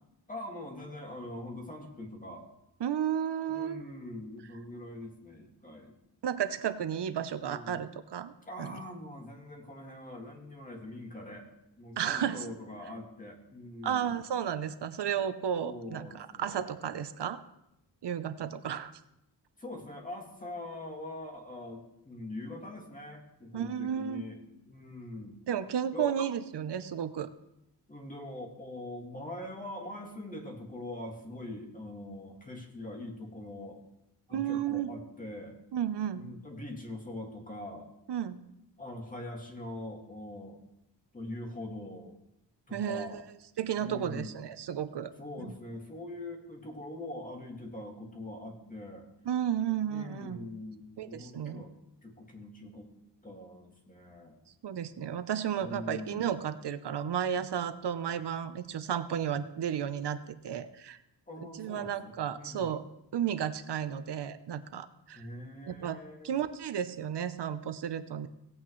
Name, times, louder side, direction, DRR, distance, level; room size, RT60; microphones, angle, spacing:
voice 1, 0.3-2.4 3.5-6.0 7.4-7.8 8.5-11.5 11.8-14.2 15.6-16.9 19.6-24.4 24.7-25.4 25.9-26.2 27.9-33.8 34.3-35.6 36.1-37.9 38.8-40.6 41.1-42.1 42.7-43.2 43.7-44.4 45.2-49.1 49.8-51.7 52.0-52.9 53.2-54.4 55.5-56.3 61.3-62.7 65.1-66.3, left 1 dB, 20° left, 1 dB, 2.1 m, -43 dB
voice 2, 2.8-3.8 6.2-8.3 8.6-8.8 12.0-12.5 13.8-17.4 18.0-18.9 23.5-24.2 25.5-27.3 34.3-34.9 35.7-36.2 38.1-38.4 42.7-43.2 43.6-45.1 45.4-45.5 49.3-50.4 51.0-51.6 54.6-61.0 61.5-62.8 63.1-65.3 65.7-66.0 66.2-68.3, right 9 dB, 70° right, 11 dB, 0.8 m, -33 dB
17.5 x 8.7 x 3.2 m, 0.84 s
wide cardioid pair, 145°, 42 cm